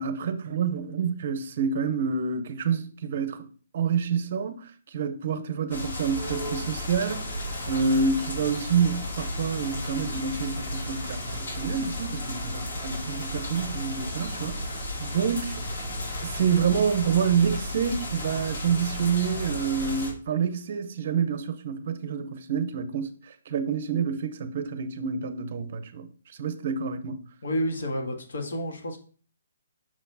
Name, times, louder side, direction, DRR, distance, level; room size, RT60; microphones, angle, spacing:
voice 1, 0.0-3.5 3.7-7.2 7.7-15.6 16.2-27.2, right 6 dB, 40° right, 0.7 m, -28 dB
sound 1, 5.7-20.1, left 1 dB, 50° left, 2.7 m, -33 dB
voice 2, 27.4-29.0, equal, 70° left, 1.7 m, -30 dB
6.1 x 4.4 x 4.0 m
hypercardioid pair, 175°, 0 cm